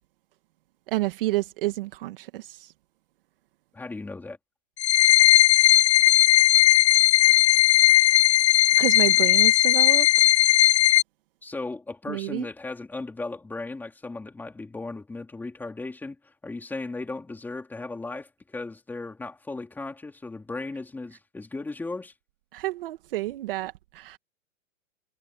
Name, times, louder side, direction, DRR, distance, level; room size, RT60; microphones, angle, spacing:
voice 1, 0.9-2.7 8.8-10.1 12.1-12.5 22.5-24.2, right 17 dB, 40° right, 1.9 m, -29 dB
voice 2, 3.7-4.4 11.4-22.1, left 3 dB, 5° left, 3.4 m, -36 dB
sound 1, 4.8-11.0, left 14 dB, 50° left, 1.0 m, -17 dB
hypercardioid pair, 165°, 40 cm